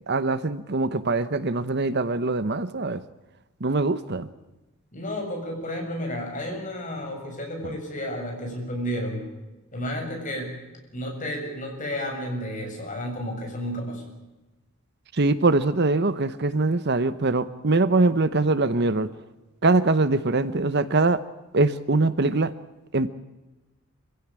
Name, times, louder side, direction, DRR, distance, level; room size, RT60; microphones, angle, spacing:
voice 1, 0.1-3.0 3.6-4.3 15.1-19.1 19.6-21.2 21.5-22.5 22.9-23.1, right 3 dB, 50° right, 14 dB, 0.9 m, -22 dB
voice 2, 4.9-9.3 9.7-10.5 10.9-14.0, equal, 35° left, 2 dB, 7.1 m, -32 dB
25.5 x 16.5 x 8.9 m, 1.1 s
head